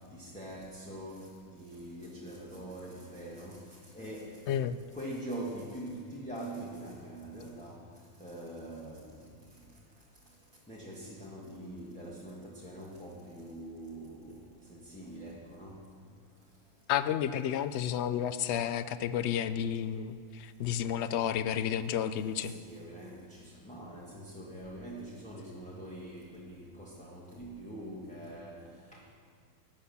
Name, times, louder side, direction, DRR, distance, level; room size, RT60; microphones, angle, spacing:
voice 1, 0.1-4.6 4.9-7.8 8.2-9.1 10.7-15.8 22.4-28.6 28.9-29.0, right 1 dB, 5° left, -5 dB, 1.6 m, -44 dB
voice 2, 16.9-22.5, left 9 dB, 65° left, 13 dB, 0.7 m, -31 dB
17.5 x 7.0 x 7.1 m, 2.2 s
omnidirectional pair, 1.6 m